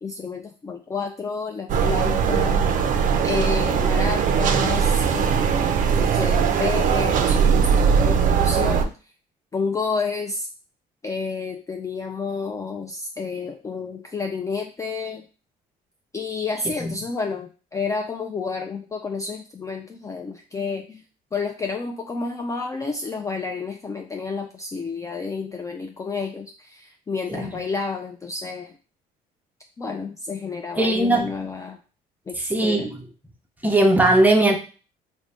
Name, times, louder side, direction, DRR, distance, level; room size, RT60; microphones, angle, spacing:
voice 1, 0.0-2.7 3.2-8.9 9.5-10.5 11.0-15.3 16.1-21.0 21.3-28.8 29.8-31.8 32.3-32.9, left 4 dB, 20° left, 4 dB, 0.3 m, -30 dB
sound 1, 1.7-8.9, right 7 dB, 50° right, 0.4 m, -20 dB
voice 2, 30.8-31.3 32.4-33.0 33.6-34.6, right 1 dB, 10° right, 3 dB, 0.7 m, -19 dB
3.7 x 2.1 x 3.3 m, 0.36 s
cardioid pair, 110°, 17 cm